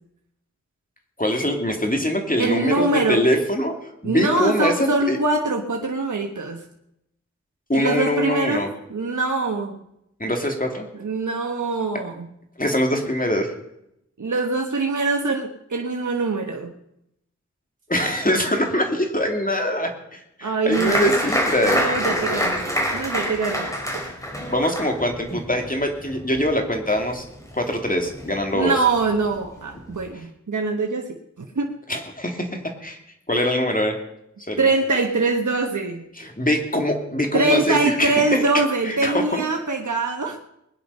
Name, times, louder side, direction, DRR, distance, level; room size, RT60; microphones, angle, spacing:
voice 1, 1.2-5.2 7.7-8.7 10.2-10.9 12.6-13.5 17.9-21.8 24.5-27.2 27.5-28.7 31.9-32.5 32.8-33.0 33.3-33.9 34.5-34.7 36.2-38.5 38.8-39.4, left 1 dB, 30° left, 3 dB, 2.5 m, -23 dB
voice 2, 2.4-3.2 4.0-6.6 7.7-9.8 10.9-12.3 14.2-16.7 20.4-21.2 21.7-22.7 22.9-23.8 28.5-31.7 34.6-36.0 37.3-40.4, right 3 dB, 80° right, 2 dB, 1.3 m, -23 dB
Applause, 20.7-27.8 28.0-28.8 29.2-29.3 29.6-30.0, equal, 10° left, 4.5 m, -26 dB
21.0 x 9.9 x 5.5 m, 0.81 s
wide cardioid pair, 45°, 30 cm